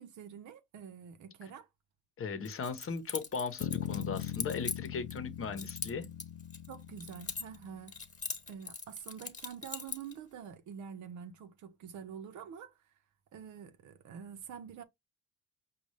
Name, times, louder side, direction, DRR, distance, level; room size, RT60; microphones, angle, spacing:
voice 1, 0.0-1.7 6.7-8.0 8.5-12.7 13.3-14.8, right 7 dB, 75° right, 0.7 m, -47 dB
voice 2, 2.2-6.1, left 5 dB, 45° left, 0.9 m, -37 dB
Keys jangling, 2.5-5.2 5.6-7.6 7.9-10.1, left 4 dB, 25° left, 1.3 m, -41 dB
sound 1, 3.6-8.0, left 11 dB, 75° left, 0.5 m, -40 dB
5.2 x 2.3 x 3.2 m
cardioid pair, 90°, 30 cm